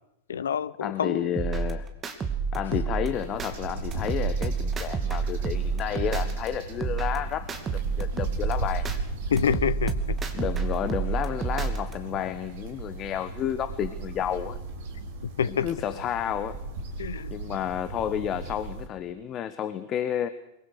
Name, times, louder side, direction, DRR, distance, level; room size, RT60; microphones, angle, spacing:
voice 1, 0.3-1.3 2.7-2.8 9.3-10.0 15.4-15.7 17.0-17.3, left 8 dB, 65° left, 0.8 m, -27 dB
voice 2, 0.8-1.9 2.5-9.0 10.3-14.6 15.4-16.6 17.3-20.3, left 10 dB, 30° left, 1.3 m, -31 dB
sound 1, 1.4-3.5 3.9-6.5 6.8-9.0 9.4-11.9, right 5 dB, 20° right, 2.6 m, -29 dB
sound 2, 3.0-18.9, right 3 dB, 55° right, 4.0 m, -36 dB
24.0 x 22.5 x 6.7 m
figure-of-eight pair, 90°, 0 cm